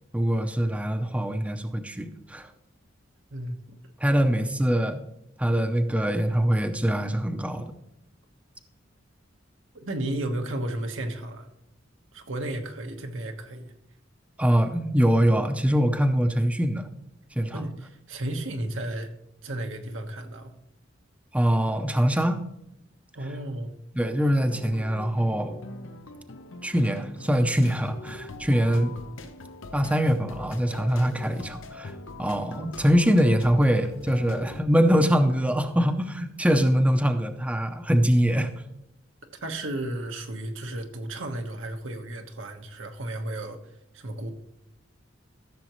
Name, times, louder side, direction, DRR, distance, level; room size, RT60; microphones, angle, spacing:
voice 1, 0.1-2.5 4.0-5.0 5.4-7.7 14.4-16.9 17.4-17.6 21.3-22.4 23.9-25.6 26.6-29.0 29.7-31.9 32.2-38.5, equal, 5° right, 7 dB, 0.6 m, -23 dB
voice 2, 3.3-3.8 9.7-11.5 12.1-13.7 17.5-19.1 19.4-20.5 23.1-23.7 39.3-43.6 43.9-44.3, right 1 dB, 85° right, 4 dB, 1.3 m, -33 dB
sound 1, 24.0-34.6, left 2 dB, 90° left, 0.8 m, -42 dB
14.5 x 6.8 x 3.1 m, 0.82 s
head